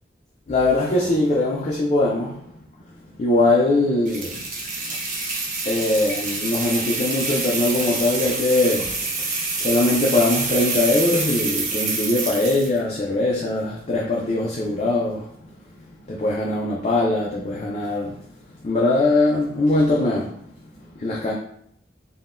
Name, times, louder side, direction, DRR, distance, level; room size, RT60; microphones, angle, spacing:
voice 1, 0.5-2.5 3.0-4.4 4.8-5.0 5.6-15.5 16.1-18.2 18.6-20.4 20.9-21.3, left 2 dB, 40° left, 0.4 m, -21 dB
sound 1, 4.1-12.8, right 3 dB, 45° right, 0.6 m, -27 dB
3.6 x 2.2 x 2.4 m
head